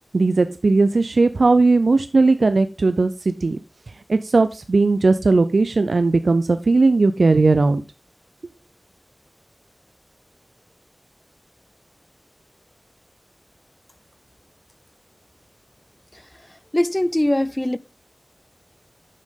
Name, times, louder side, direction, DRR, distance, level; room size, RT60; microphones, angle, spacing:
voice 1, 0.1-3.6 4.1-7.8, right 3 dB, 80° right, 0.5 m, -17 dB
voice 2, 16.7-17.8, left 1 dB, 20° left, 0.4 m, -21 dB
10.5 x 6.3 x 3.7 m
wide cardioid pair, 40°, 0 cm